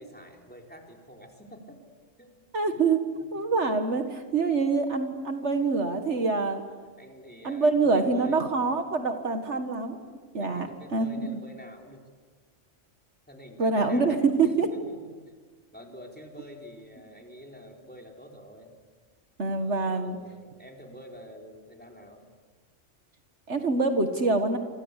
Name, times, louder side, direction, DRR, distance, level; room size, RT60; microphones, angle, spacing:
voice 1, 0.0-1.8 2.2-2.5 3.3-3.9 7.0-8.8 10.4-12.0 13.3-15.0 15.3-15.4 15.7-18.8 19.6-22.3, equal, 5° left, 1 dB, 4.1 m, -47 dB
voice 2, 2.5-3.0 3.3-6.6 7.4-10.0 10.3-11.3 13.6-14.7 19.4-20.2 23.5-24.6, right 4 dB, 65° right, 7 dB, 2.0 m, -25 dB
28.0 x 25.5 x 8.2 m, 1.5 s
omnidirectional pair, 1.3 m